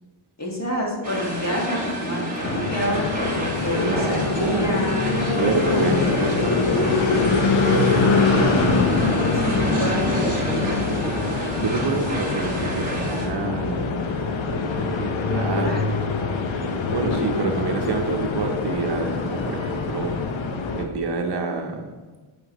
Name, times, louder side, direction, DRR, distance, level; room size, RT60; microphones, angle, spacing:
voice 1, 0.4-5.1 5.5-6.1 9.3-10.9 15.3-15.9, left 1 dB, 30° left, -2 dB, 1.7 m, -28 dB
sound 1, 1.0-13.3, right 1 dB, 15° right, 1.8 m, -30 dB
sound 2, 2.4-20.8, left 4 dB, 65° left, 0.8 m, -24 dB
voice 2, 3.9-4.9 5.3-7.4 7.7-8.9 11.6-14.0 14.5-15.8 16.6-20.3 20.7-22.0, right 4 dB, 55° right, 4 dB, 0.7 m, -28 dB
Wind instrument woodwind instrument, 4.3-11.1, left 2 dB, 85° left, 1.6 m, -31 dB
7.6 x 5.0 x 3.0 m, 1.3 s
cardioid pair, 90°, 50 cm